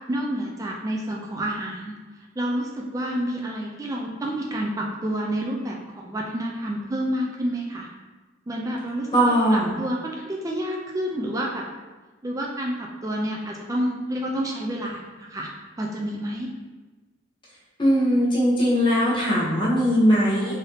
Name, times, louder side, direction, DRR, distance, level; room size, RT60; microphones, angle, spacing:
voice 1, 0.1-1.9 2.4-7.9 8.5-11.6 12.2-15.0 15.3-15.5 15.8-16.5, right 1 dB, 15° right, -1 dB, 0.3 m, -29 dB
voice 2, 9.1-9.7 17.8-20.6, equal, 25° left, -6 dB, 1.0 m, -20 dB
3.9 x 2.6 x 3.3 m, 1.3 s
head